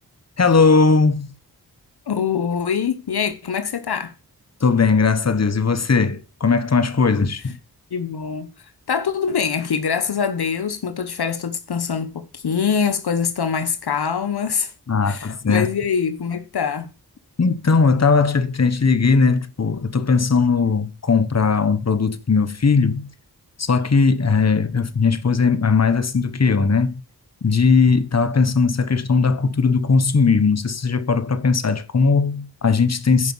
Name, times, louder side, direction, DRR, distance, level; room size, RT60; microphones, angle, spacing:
voice 1, 0.4-1.3 4.6-7.6 14.9-15.7 17.4-23.1 23.6-27.0 27.4-33.3, left 4 dB, 40° left, 1.2 m, -18 dB
voice 2, 2.1-4.1 7.9-8.5 8.9-14.7 15.0-16.9, left 6 dB, 80° left, 1.0 m, -24 dB
10.0 x 5.3 x 7.1 m
cardioid pair, 45°, 38 cm